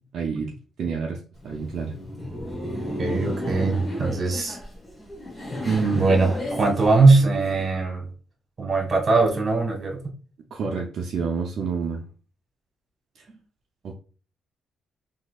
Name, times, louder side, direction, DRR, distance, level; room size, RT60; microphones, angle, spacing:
voice 1, 0.1-1.9 5.6-6.2 10.5-12.1 13.1-13.2 13.8-13.9, right 5 dB, 65° right, -1 dB, 0.6 m, -28 dB
Laughter, 1.4-7.6, left 1 dB, 20° left, 1.3 m, -33 dB
voice 2, 3.0-4.6 5.9-8.1 8.6-10.0, right 3 dB, 40° right, 1 dB, 1.5 m, -20 dB
3.9 x 2.8 x 2.4 m, 0.38 s
cardioid pair, 90°, 0 cm